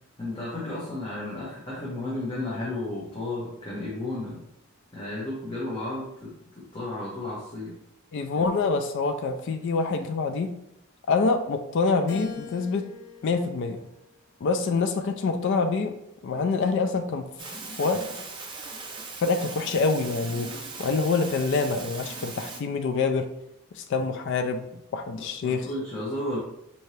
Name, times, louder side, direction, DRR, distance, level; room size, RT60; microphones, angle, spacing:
voice 1, 0.2-4.4 4.9-7.7 8.3-8.4 25.2-26.4, left 2 dB, 20° left, -7 dB, 0.9 m, -33 dB
voice 2, 8.1-10.5 11.1-12.9 13.2-13.8 14.4-16.0 16.2-17.3 17.8-18.1 19.2-20.5 20.8-23.3 23.7-24.7 24.9-25.7, left 4 dB, 55° left, 7 dB, 0.3 m, -26 dB
Keyboard (musical), 12.1-14.6 15.2-16.4, left 5 dB, 75° left, 0.8 m, -45 dB
sound 1, 17.4-22.6, right 3 dB, 20° right, 0.5 m, -39 dB
4.3 x 2.8 x 3.2 m, 0.80 s
head